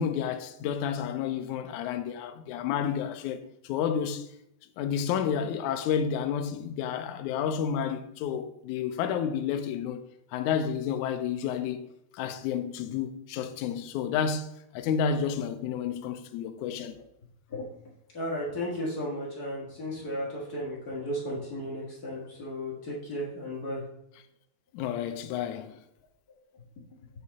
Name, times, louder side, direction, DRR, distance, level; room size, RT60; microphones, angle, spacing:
voice 1, 0.0-4.3 4.8-10.0 10.3-11.8 12.1-16.9 24.7-25.8, left 7 dB, 85° left, 1.7 m, -30 dB
voice 2, 18.1-23.8 25.5-25.6, equal, 40° left, 1.3 m, -34 dB
7.9 x 4.9 x 4.1 m
omnidirectional pair, 4.2 m